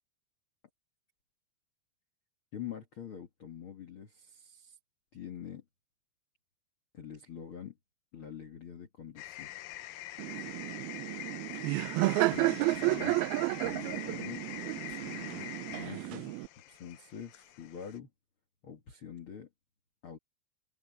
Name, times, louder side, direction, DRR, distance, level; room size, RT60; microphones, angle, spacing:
voice 1, 2.5-4.7 5.1-5.6 6.9-7.7 8.1-10.0 12.3-13.2 13.5-14.4 14.9-16.3 16.7-18.1 18.6-19.5 20.0-20.2, left 8 dB, 50° left, 1.6 m, -45 dB
sound 1, 9.2-18.0, left 14 dB, 80° left, 2.1 m, -44 dB
Laughter, 10.2-16.5, right 20 dB, 85° right, 2.2 m, -32 dB
omnidirectional pair, 5.1 m